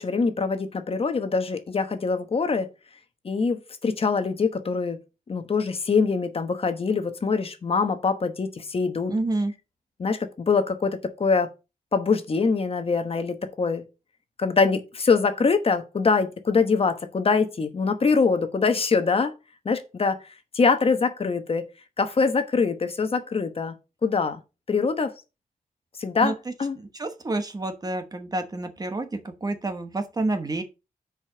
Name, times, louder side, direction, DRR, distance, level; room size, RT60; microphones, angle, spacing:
voice 1, 0.0-2.7 3.2-5.0 5.3-9.1 10.0-11.5 11.9-13.8 14.4-19.3 19.6-20.2 20.5-21.7 22.0-23.7 24.0-24.4 24.7-25.1 26.0-26.8, left 4 dB, 40° left, 1.1 m, -24 dB
voice 2, 9.1-9.5 26.2-26.3 26.8-30.6, right 2 dB, 25° right, 1.1 m, -29 dB
6.4 x 5.0 x 6.7 m
wide cardioid pair, 175°, 15 cm